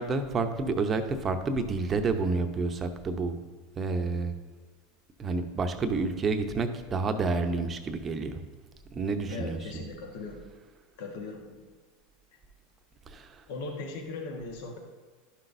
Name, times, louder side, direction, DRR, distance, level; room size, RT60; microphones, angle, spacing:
voice 1, 0.0-3.4 3.8-4.3 5.2-8.4 8.9-9.6 13.1-13.4, right 3 dB, 30° right, 7 dB, 0.8 m, -29 dB
voice 2, 9.3-10.5 11.0-11.7 13.5-14.8, left 3 dB, 70° left, 2 dB, 1.3 m, -39 dB
11.5 x 5.9 x 2.6 m, 1.4 s
hypercardioid pair, 100°, 0 cm